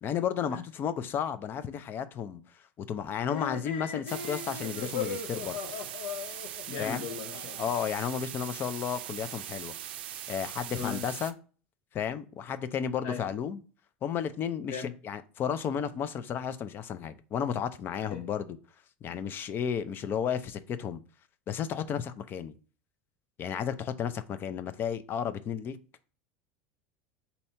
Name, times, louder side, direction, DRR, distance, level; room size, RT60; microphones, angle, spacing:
voice 1, 0.0-5.6 6.8-7.1 7.6-9.7 10.3-11.3 11.9-13.6 14.0-18.6 19.0-21.0 21.5-22.5 23.4-25.8, left 8 dB, 40° left, 0.5 m, -33 dB
sound 1, 3.2-7.8, left 7 dB, 85° left, 0.7 m, -38 dB
sound 2, 4.1-11.3, right 11 dB, 80° right, 0.4 m, -41 dB
voice 2, 6.7-7.6 10.7-11.0 13.0-13.2 14.7-14.9 18.1-18.2, left 6 dB, 65° left, 1.1 m, -37 dB
4.1 x 2.8 x 4.3 m
hypercardioid pair, 90°, 5 cm